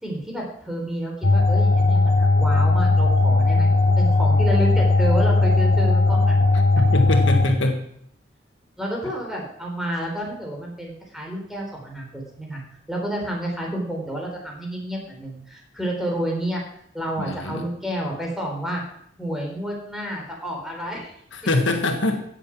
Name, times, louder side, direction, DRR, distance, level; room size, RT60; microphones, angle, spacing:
voice 1, 0.0-3.7 4.0-6.3 8.8-12.6 12.9-16.6 16.9-18.8 19.2-21.2, right 1 dB, ahead, -1 dB, 3.9 m, -30 dB
sound 1, 1.2-7.5, left 3 dB, 60° left, 1.3 m, -18 dB
voice 2, 6.8-7.8 17.2-17.6 21.3-22.2, left 2 dB, 75° left, 5 dB, 1.7 m, -23 dB
16.0 x 7.6 x 6.1 m, 0.69 s
head